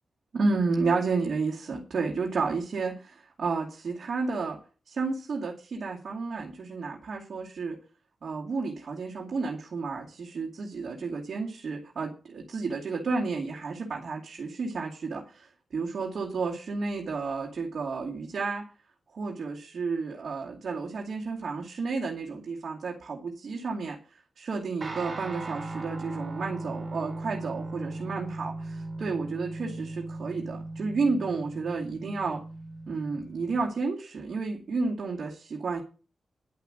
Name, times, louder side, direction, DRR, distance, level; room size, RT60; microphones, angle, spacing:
voice 1, 0.3-4.6 4.9-7.8 8.2-18.6 19.1-24.0 24.4-32.4 32.9-35.8, right 4 dB, 65° right, -2 dB, 2.4 m, -31 dB
Guitar, 24.8-33.6, right 2 dB, 45° right, 4.9 m, -38 dB
11.0 x 5.8 x 8.8 m, 0.36 s
wide cardioid pair, 95°, 0 cm